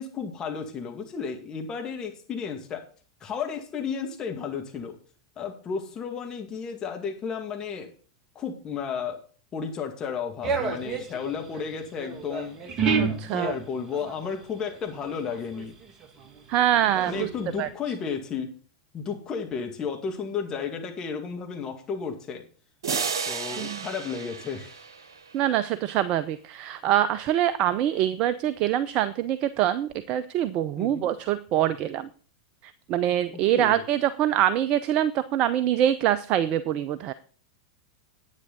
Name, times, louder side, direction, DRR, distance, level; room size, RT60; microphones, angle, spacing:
voice 1, 0.0-2.8 3.2-4.9 5.4-7.9 8.4-9.2 9.5-12.6 13.3-15.7 17.1-18.5 18.9-22.4 23.3-24.8 30.8-31.1 33.3-33.9, left 6 dB, 30° left, 3 dB, 2.2 m, -33 dB
sound 1, 10.4-14.4 14.7-16.4 16.7-17.7, right 5 dB, 25° right, 1.8 m, -30 dB
voice 2, 13.0-13.5 16.5-17.3 17.6-17.7 23.5-23.8 25.3-32.1 32.9-37.1, right 11 dB, 40° right, 14 dB, 0.6 m, -24 dB
sound 2, 22.8-25.5, right 5 dB, 65° right, 1.4 m, -33 dB
10.5 x 9.1 x 4.0 m, 0.42 s
figure-of-eight pair, 90°, 2 cm